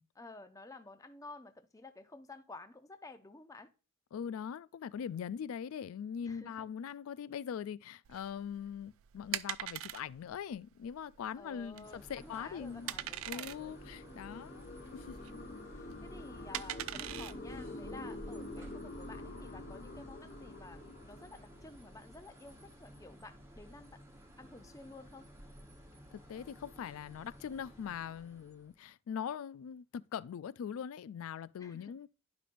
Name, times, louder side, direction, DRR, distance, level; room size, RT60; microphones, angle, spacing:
voice 1, 0.2-3.7 6.2-7.0 11.3-13.8 14.3-14.4 15.3-24.0 24.4-25.3 31.6-31.9, left 2 dB, 15° left, 0.6 m, -52 dB
voice 2, 4.1-12.9 13.3-14.6 14.9-15.2 26.1-32.1, left 8 dB, 75° left, 0.3 m, -42 dB
sound 1, 8.1-18.7, right 13 dB, 70° right, 0.3 m, -43 dB
sound 2, 11.4-22.0, left 2 dB, 45° left, 1.0 m, -47 dB
sound 3, 11.8-28.8, equal, 10° right, 1.1 m, -56 dB
11.5 x 5.0 x 2.5 m
head